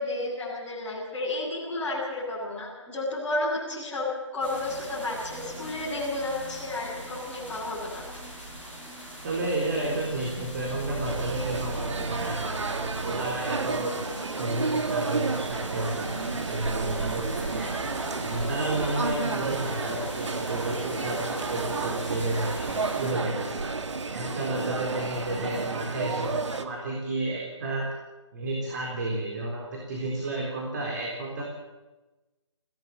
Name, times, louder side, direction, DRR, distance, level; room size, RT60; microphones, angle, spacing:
voice 1, 0.0-4.1 4.3-8.0, left 2 dB, 5° left, -12 dB, 7.2 m, -32 dB
sound 1, 4.4-23.1, right 1 dB, 10° right, 6.3 m, -40 dB
voice 2, 9.2-14.0 14.4-17.7 18.2-22.7 23.0-23.7 24.1-27.9 28.3-31.4, right 2 dB, 40° right, -1 dB, 4.1 m, -31 dB
sound 2, 11.0-26.7, right 4 dB, 70° right, 1.7 m, -31 dB
21.5 x 17.0 x 7.7 m, 1.1 s
figure-of-eight pair, 155°, 16 cm